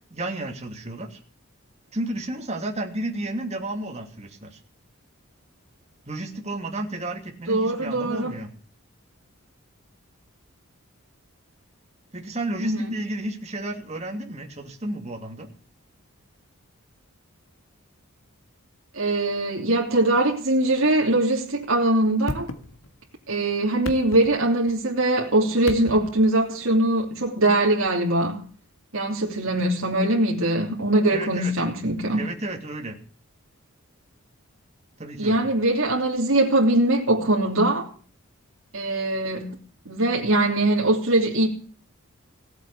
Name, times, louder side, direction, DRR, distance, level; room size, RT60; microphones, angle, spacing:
voice 1, 0.1-1.2 1.9-4.6 6.1-8.5 12.1-15.5 31.1-31.5 32.2-33.0 35.0-35.5, right 1 dB, 30° right, 2.7 m, -32 dB
voice 2, 7.5-8.3 12.6-13.0 18.9-22.5 23.3-28.4 28.9-32.3 35.2-37.9 38.7-39.6 39.8-41.5, right 1 dB, 70° right, 3.0 m, -22 dB
sound 1, 22.2-23.2 23.7-24.9 25.6-26.3 27.8-27.9, left 1 dB, 75° left, 1.9 m, -35 dB
17.5 x 8.1 x 8.5 m
head